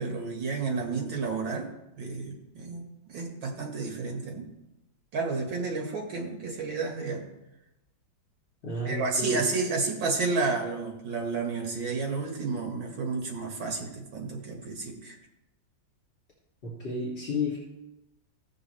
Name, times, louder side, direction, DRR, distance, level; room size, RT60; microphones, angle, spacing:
voice 1, 0.0-1.7 2.0-4.5 5.1-7.3 8.8-15.2, right 4 dB, 75° right, 1 dB, 2.4 m, -31 dB
voice 2, 8.6-9.4 16.6-17.6, left 2 dB, 35° left, -7 dB, 2.8 m, -31 dB
16.5 x 6.1 x 3.3 m, 0.92 s
omnidirectional pair, 2.2 m